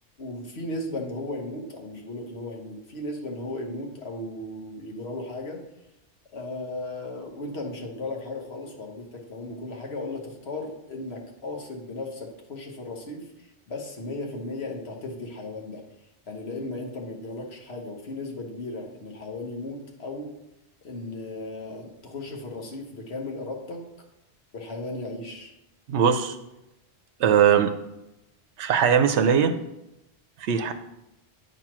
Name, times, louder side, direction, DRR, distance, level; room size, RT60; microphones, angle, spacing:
voice 1, 0.2-5.6 6.3-15.8 16.3-20.4 20.8-23.9 24.5-25.5, left 2 dB, 65° left, 1 dB, 1.4 m, -36 dB
voice 2, 25.9-26.4 27.2-27.7 28.6-29.5 30.4-30.7, right 7 dB, 85° right, 10 dB, 0.9 m, -20 dB
8.1 x 3.1 x 5.9 m, 0.90 s
omnidirectional pair, 1.2 m